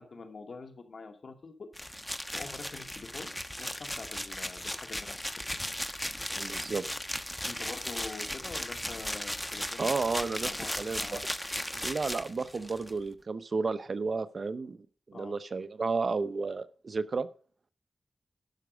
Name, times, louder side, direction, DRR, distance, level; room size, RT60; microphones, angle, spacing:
voice 1, 0.0-5.1 5.5-5.6 7.4-9.9 10.2-11.2 11.6-11.8 15.1-15.4, left 4 dB, 70° left, 5 dB, 2.4 m, -45 dB
sound 1, 1.7-12.9, equal, 10° left, 1.2 m, -36 dB
voice 2, 6.4-6.8 9.8-10.5 10.8-11.2 11.8-14.8 15.1-17.3, right 4 dB, 60° right, 13 dB, 0.9 m, -32 dB
12.0 x 6.2 x 6.3 m, 0.41 s
cardioid pair, 60°, 0 cm